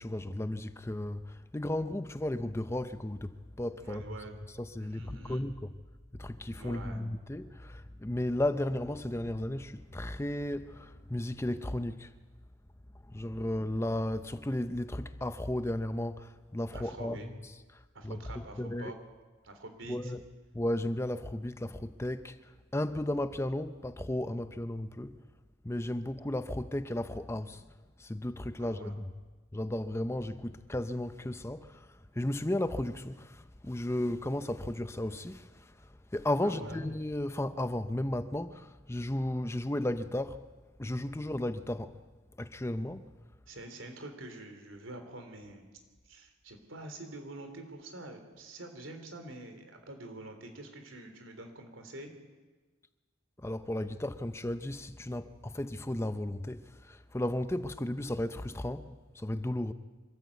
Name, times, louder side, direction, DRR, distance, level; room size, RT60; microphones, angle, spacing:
voice 1, 0.0-4.0 4.6-5.7 6.1-12.2 13.1-17.2 17.7-18.9 19.9-20.2 20.5-25.2 25.6-27.7 28.0-29.1 29.5-40.4 40.8-42.0 42.4-43.1 53.4-59.7, left 1 dB, 15° left, 0.6 m, -34 dB
voice 2, 3.8-4.4 4.8-5.4 6.6-7.0 16.7-17.3 17.9-19.0 19.4-20.1 28.6-28.9 36.4-36.8 43.5-45.7 46.0-52.1, right 2 dB, 85° right, 3.3 m, -46 dB
25.5 x 14.0 x 8.3 m
head